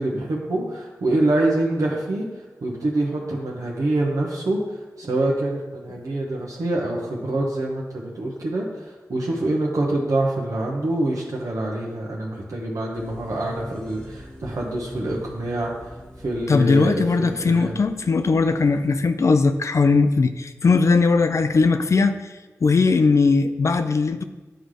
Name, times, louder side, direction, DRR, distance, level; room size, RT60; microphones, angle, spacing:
voice 1, 0.0-2.2 2.6-17.8, right 2 dB, 75° right, -3 dB, 1.0 m, -25 dB
sound 1, 12.9-18.9, left 1 dB, 10° left, 1.1 m, -42 dB
voice 2, 16.5-22.3 22.6-24.2, left 4 dB, 60° left, 9 dB, 0.4 m, -19 dB
10.0 x 3.8 x 3.2 m, 1.3 s
cardioid pair, 60°, 6 cm